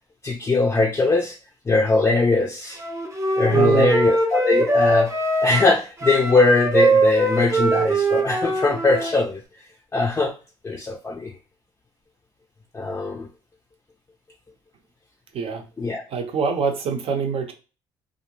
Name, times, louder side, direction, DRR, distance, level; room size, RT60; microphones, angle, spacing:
voice 1, 0.2-1.4 1.7-2.8 3.4-5.1 5.4-9.6 9.9-10.3 10.6-11.3 12.7-13.3 15.8-16.0, left 3 dB, 20° left, 2 dB, 0.4 m, -21 dB
Wind instrument woodwind instrument, 2.8-9.1, right 2 dB, 25° right, 0.7 m, -21 dB
voice 2, 3.5-3.9 15.3-15.6 16.1-17.5, right 5 dB, 60° right, 4 dB, 0.7 m, -25 dB
2.5 x 2.0 x 3.0 m, 0.33 s
supercardioid pair, 75°, 11 cm